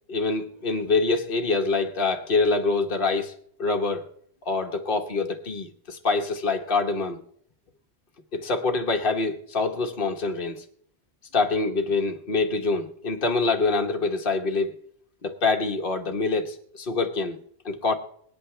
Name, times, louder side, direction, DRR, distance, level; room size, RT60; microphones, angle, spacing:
voice 1, 0.1-3.3 3.6-4.1 4.4-7.2 8.3-10.6 11.3-14.7 15.2-17.4 17.6-17.9, left 3 dB, 55° left, 1.5 m, -25 dB
26.0 x 9.1 x 3.3 m
omnidirectional pair, 1.1 m